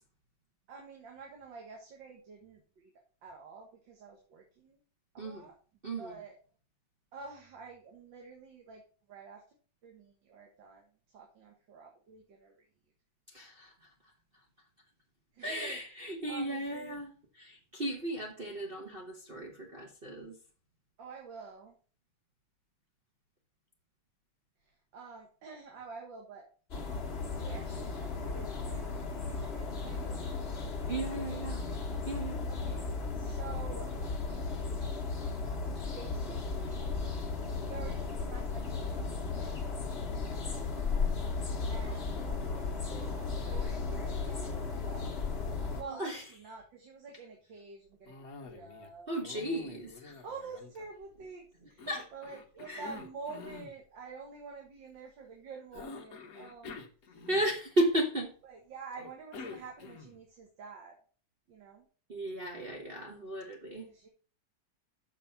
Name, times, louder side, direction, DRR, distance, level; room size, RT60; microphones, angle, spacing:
voice 1, 0.7-2.9 3.2-4.8 5.1-5.6 6.0-6.4 7.1-8.8 9.1-9.4 9.8-10.9 11.1-12.5 15.3-15.8 16.3-17.0 21.0-21.8 24.9-26.5 27.4-30.7 31.3-31.5 32.5-33.9 35.7-37.1 37.5-40.1 41.7-45.4 45.7-49.1 50.2-56.8 57.0-57.3 58.4-61.0 61.5-61.9 63.9-64.1, right 4 dB, 70° right, 2.2 m, -48 dB
voice 2, 5.2-5.5 5.8-6.1 13.3-13.9 15.4-20.4 30.9-31.6 32.0-32.4 45.8-46.2 49.1-50.2 51.9-52.1 52.7-52.8 57.3-58.3 62.1-63.9, right 1 dB, 35° right, 1.2 m, -35 dB
sound 1, 26.7-45.8, left 4 dB, 35° left, 1.5 m, -35 dB
Cough, 48.1-48.9 49.2-51.2 51.8-53.8 55.7-57.7 59.0-60.3, left 4 dB, 50° left, 1.4 m, -47 dB
6.8 x 6.1 x 5.7 m
omnidirectional pair, 2.2 m